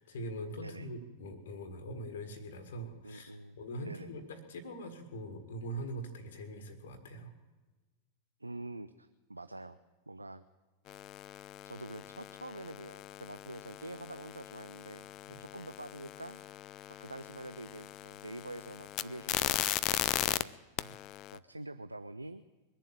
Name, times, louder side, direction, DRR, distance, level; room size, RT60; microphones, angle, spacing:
voice 1, 0.0-7.3 15.3-15.4 20.8-20.9, right 1 dB, 60° left, 8 dB, 1.7 m, -43 dB
voice 2, 0.6-0.9 3.0-4.1 8.4-9.8 10.1-10.5 11.6-16.4 16.9-20.6 21.3-22.5, right 2 dB, 85° right, 13 dB, 0.4 m, -46 dB
sound 1, 10.9-20.4 20.8-21.4, left 14 dB, 35° left, 0.4 m, -38 dB
21.5 x 7.4 x 8.9 m, 1.3 s
figure-of-eight pair, 90°, 0 cm